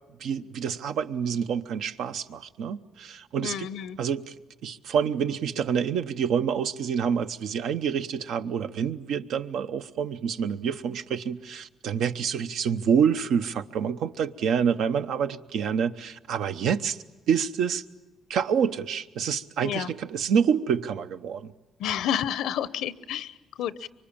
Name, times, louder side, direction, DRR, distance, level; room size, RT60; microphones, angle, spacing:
voice 1, 0.2-3.7 4.0-4.3 4.6-17.0 17.3-17.8 18.3-21.5, right 7 dB, 80° right, 0.8 m, -27 dB
voice 2, 3.4-4.0 19.6-19.9 21.8-23.9, left 10 dB, 85° left, 0.8 m, -30 dB
25.5 x 23.5 x 8.7 m
cardioid pair, 90°, 0 cm